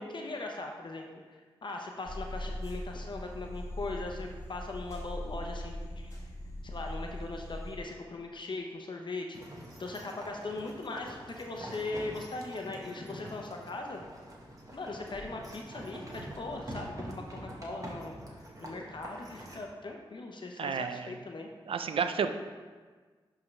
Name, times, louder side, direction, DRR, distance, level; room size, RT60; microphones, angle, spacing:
voice 1, 0.0-6.3 6.6-9.4 9.8-14.0 14.7-21.5, left 2 dB, 55° left, 2 dB, 0.8 m, -40 dB
sound 1, 2.0-7.8, equal, 30° left, 1.5 m, -40 dB
sound 2, 9.3-19.6, right 1 dB, 35° right, 1.4 m, -45 dB
voice 2, 20.6-21.1 21.7-22.3, right 6 dB, 70° right, 8 dB, 0.4 m, -31 dB
10.5 x 3.7 x 3.2 m, 1.4 s
cardioid pair, 40°, 10 cm